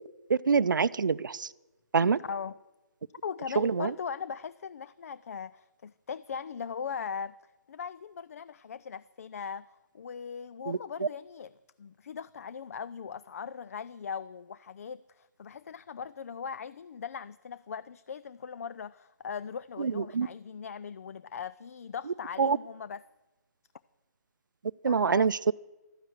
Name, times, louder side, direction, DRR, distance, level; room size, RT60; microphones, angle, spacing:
voice 1, 0.3-1.5 1.9-2.2 3.6-3.9 10.7-11.1 19.8-20.3 22.4-22.6 24.8-25.5, right 5 dB, 80° right, 17 dB, 0.5 m, -26 dB
voice 2, 2.2-2.6 3.2-7.4 7.7-11.5 11.8-23.0 24.9-25.3, left 6 dB, 50° left, 17 dB, 0.4 m, -39 dB
13.0 x 10.0 x 9.2 m, 1.1 s
hypercardioid pair, 160°, 10 cm